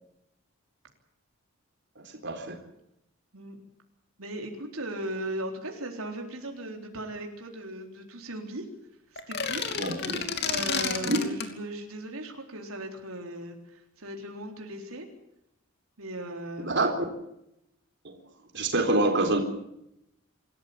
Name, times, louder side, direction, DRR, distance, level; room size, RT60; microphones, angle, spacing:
voice 1, 2.2-2.6 9.8-10.2 11.0-11.2 16.6-16.9 18.0-18.1 18.5-19.4, right 2 dB, 55° right, 4 dB, 4.0 m, -26 dB
voice 2, 4.2-8.7 9.1-10.1 10.4-15.1 16.0-16.7, right 1 dB, 90° right, 2 dB, 4.0 m, -37 dB
sound 1, 9.2-11.5, left 6 dB, 50° left, 2.8 m, -30 dB
26.5 x 14.5 x 8.8 m, 0.81 s
head